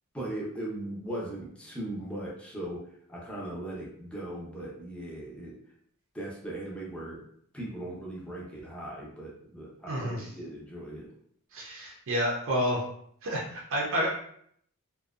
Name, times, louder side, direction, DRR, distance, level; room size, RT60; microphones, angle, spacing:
voice 1, 0.1-5.6 6.1-7.2 7.5-11.1, right 1 dB, 5° left, -5 dB, 0.6 m, -38 dB
voice 2, 9.9-10.3 11.5-12.8 13.2-14.1, equal, 60° right, -3 dB, 0.5 m, -29 dB
2.6 x 2.2 x 2.3 m, 0.66 s
head